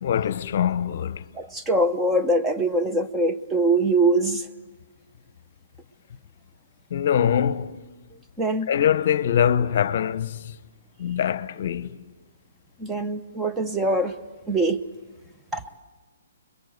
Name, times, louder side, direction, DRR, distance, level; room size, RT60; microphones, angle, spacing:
voice 1, 0.0-1.2 6.9-7.8 8.7-10.4 11.0-12.0, left 9 dB, 55° left, 0.8 m, -23 dB
voice 2, 1.4-4.4 8.4-8.7 12.8-14.1 14.5-14.8 15.5-15.6, right 2 dB, 10° right, 0.9 m, -23 dB
25.0 x 22.0 x 7.9 m
hypercardioid pair, 140°, 0 cm